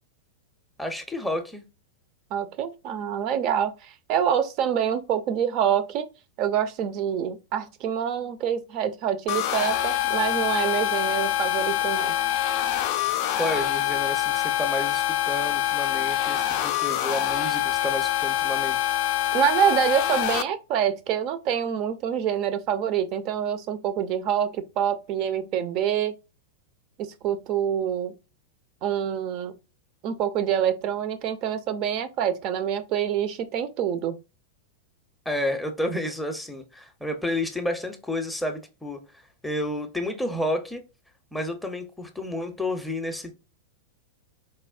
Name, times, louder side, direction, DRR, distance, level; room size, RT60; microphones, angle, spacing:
voice 1, 0.8-1.6 13.4-18.8 35.3-39.0 39.4-40.8 41.3-43.3, left 1 dB, 5° left, 0.6 m, -30 dB
voice 2, 2.3-6.0 6.4-12.1 19.3-26.1 27.0-28.1 28.8-29.6 30.0-34.1, right 9 dB, 40° right, 0.5 m, -26 dB
sound 1, 9.3-20.4, left 12 dB, 45° left, 0.4 m, -25 dB
4.2 x 2.0 x 2.3 m
figure-of-eight pair, 95°, 0 cm